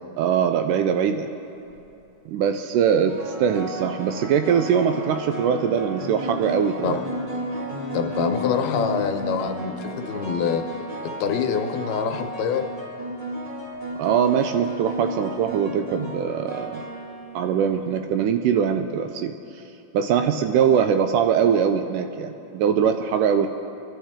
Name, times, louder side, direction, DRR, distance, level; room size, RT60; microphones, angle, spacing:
voice 1, 0.2-1.3 2.3-7.0 14.0-16.8 17.4-19.3 19.9-23.5, right 8 dB, 90° right, 7 dB, 1.8 m, -22 dB
sound 1, 1.5-1.8 3.1-17.9, equal, 20° right, 1.6 m, -33 dB
voice 2, 7.9-10.7 11.2-12.7, left 7 dB, 85° left, 5 dB, 2.9 m, -25 dB
27.5 x 11.5 x 3.6 m, 2.8 s
omnidirectional pair, 4.4 m